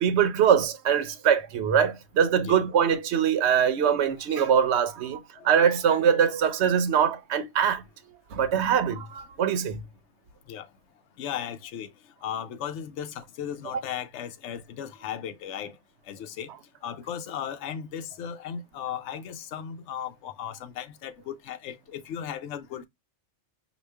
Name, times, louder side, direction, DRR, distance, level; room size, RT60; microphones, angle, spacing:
voice 1, 0.0-7.8 8.3-9.8, right 8 dB, 70° right, 0.9 m, -23 dB
voice 2, 11.2-11.9 12.2-15.7 16.1-16.5 16.8-22.9, left 9 dB, 80° left, 0.9 m, -36 dB
4.9 x 2.3 x 3.3 m
omnidirectional pair, 1.2 m